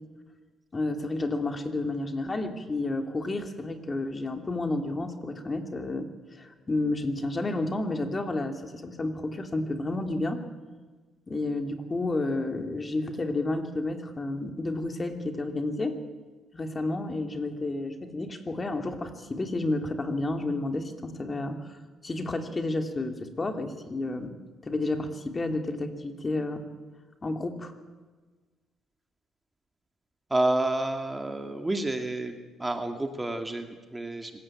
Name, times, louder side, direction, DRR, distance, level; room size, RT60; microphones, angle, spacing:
voice 1, 0.7-10.4 11.3-16.0 16.5-24.3 24.6-26.6 27.2-27.7, left 2 dB, 30° left, 6 dB, 2.8 m, -31 dB
voice 2, 30.3-34.3, right 2 dB, 15° right, 6 dB, 2.1 m, -29 dB
25.0 x 15.5 x 8.9 m, 1.3 s
cardioid pair, 95°, 0 cm